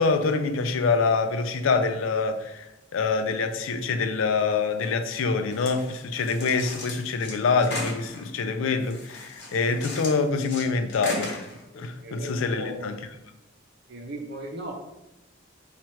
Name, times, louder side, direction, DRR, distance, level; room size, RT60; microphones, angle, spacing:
voice 1, 0.0-11.5 11.7-12.9, left 4 dB, 80° left, 8 dB, 0.4 m, -25 dB
sound 1, 4.8-5.0 5.5-8.3 8.8-10.6 10.9-11.6, left 2 dB, 55° left, 1.0 m, -37 dB
voice 2, 12.0-12.9 13.9-14.7, right 1 dB, 55° right, 2 dB, 0.6 m, -37 dB
3.0 x 2.4 x 4.3 m, 0.95 s
head